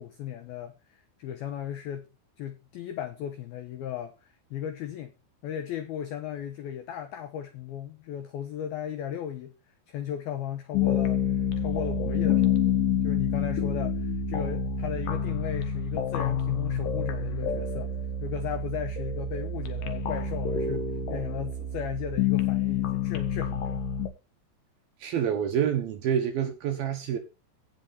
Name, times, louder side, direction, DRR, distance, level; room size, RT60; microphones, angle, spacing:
voice 1, 0.0-2.1 2.4-5.1 5.4-9.5 9.9-17.9 18.2-23.8, left 10 dB, 85° left, 2.1 m, -36 dB
sound 1, 10.7-24.1, left 6 dB, 65° left, 2.3 m, -28 dB
voice 2, 25.0-27.2, right 8 dB, 70° right, 2.3 m, -27 dB
17.0 x 5.8 x 4.1 m
omnidirectional pair, 5.6 m